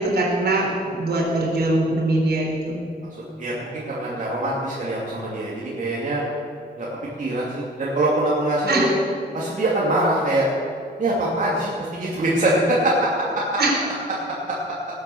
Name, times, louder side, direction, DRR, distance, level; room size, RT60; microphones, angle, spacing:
voice 1, 0.0-2.8 8.7-8.9 13.6-13.8, right 2 dB, 65° right, -2 dB, 4.2 m, -22 dB
voice 2, 3.1-6.2 6.8-6.9 7.2-8.9 9.3-10.5 11.0-13.6, right 1 dB, 45° right, -6 dB, 2.6 m, -23 dB
19.5 x 8.2 x 7.0 m, 2.4 s
wide cardioid pair, 145°, 18 cm